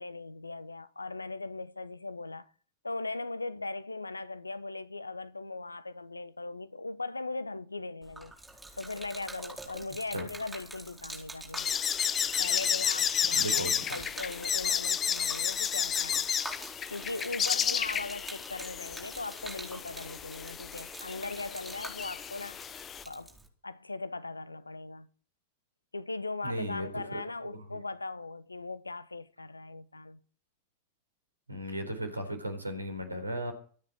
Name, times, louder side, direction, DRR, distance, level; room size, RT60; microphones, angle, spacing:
voice 1, 0.0-2.5 2.8-8.3 8.8-11.8 12.4-16.3 16.9-22.6 23.1-23.4 23.6-25.1 25.9-30.2, left 3 dB, 80° left, 0.9 m, -39 dB
Gurgling / Liquid, 8.0-23.5, right 2 dB, 5° right, 4.3 m, -46 dB
sound 1, 11.6-23.0, left 8 dB, 25° left, 0.9 m, -32 dB
voice 2, 13.3-13.8 26.4-27.8 31.5-33.5, right 1 dB, 80° right, 4.0 m, -36 dB
24.5 x 10.0 x 4.5 m
figure-of-eight pair, 90°, 0 cm